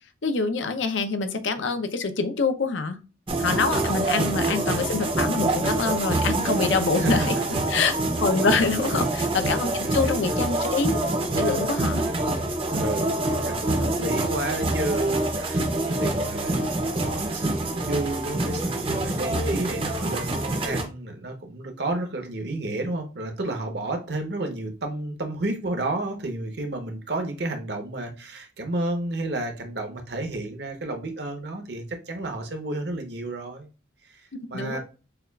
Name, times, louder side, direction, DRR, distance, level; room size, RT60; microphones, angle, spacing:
voice 1, 0.2-3.0 3.4-7.3 7.7-11.0 11.4-12.0 34.5-34.8, left 4 dB, 70° left, 8 dB, 0.6 m, -25 dB
sound 1, 3.3-20.8, right 2 dB, 30° right, 0.6 m, -26 dB
voice 2, 3.9-4.3 7.0-7.3 8.7-8.9 9.6-10.4 12.7-33.7 34.1-34.8, right 2 dB, 55° right, 4 dB, 0.8 m, -31 dB
6.7 x 2.4 x 2.3 m, 0.33 s
head